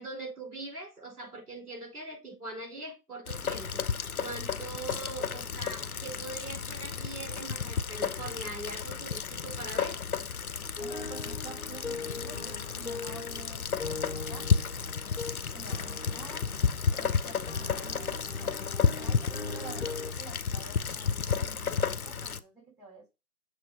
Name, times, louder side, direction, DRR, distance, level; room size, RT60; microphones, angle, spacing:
voice 1, 0.0-10.0, right 2 dB, 70° right, 4.2 m, -42 dB
Rain, 3.3-22.4, left 6 dB, 65° left, 0.7 m, -32 dB
sound 1, 10.8-20.1, left 3 dB, 40° left, 1.2 m, -41 dB
voice 2, 10.8-14.5 15.5-16.5 16.9-18.1 18.4-23.2, right 3 dB, 30° right, 3.6 m, -49 dB
6.8 x 3.2 x 5.2 m
figure-of-eight pair, 175°, 47 cm